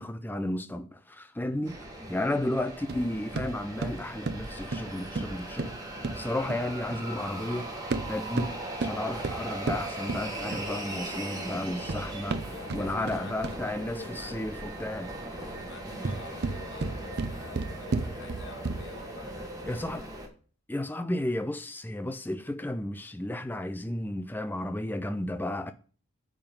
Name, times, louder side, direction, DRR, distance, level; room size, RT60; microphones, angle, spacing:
voice 1, 0.0-1.8 2.1-5.8 6.1-7.7 8.1-8.5 8.8-15.1 19.7-20.1 20.7-25.7, left 1 dB, 10° left, 0.4 m, -33 dB
sound 1, 1.6-20.3, right 1 dB, 15° right, 1.2 m, -39 dB
sound 2, 2.9-7.1 7.8-10.8 11.6-13.8 15.8-19.1, right 3 dB, 45° right, 0.5 m, -34 dB
voice 2, 12.5-14.4 15.3-20.1, left 3 dB, 55° left, 1.0 m, -47 dB
8.8 x 3.7 x 5.1 m
head